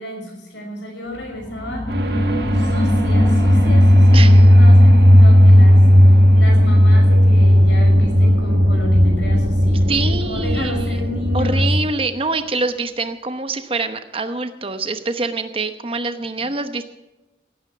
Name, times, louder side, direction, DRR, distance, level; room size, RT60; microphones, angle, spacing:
voice 1, 0.0-1.9 2.5-11.6, left 1 dB, 85° left, 1 dB, 5.7 m, -32 dB
sound 1, 1.1-12.2 12.6-12.7, left 1 dB, 20° left, 0.8 m, -28 dB
sound 2, 1.9-11.8, equal, 60° right, 1.6 m, -13 dB
voice 2, 4.1-4.5 9.9-11.0 11.3-16.9, right 3 dB, 30° right, 9 dB, 0.9 m, -25 dB
17.5 x 9.5 x 5.9 m, 1.0 s
head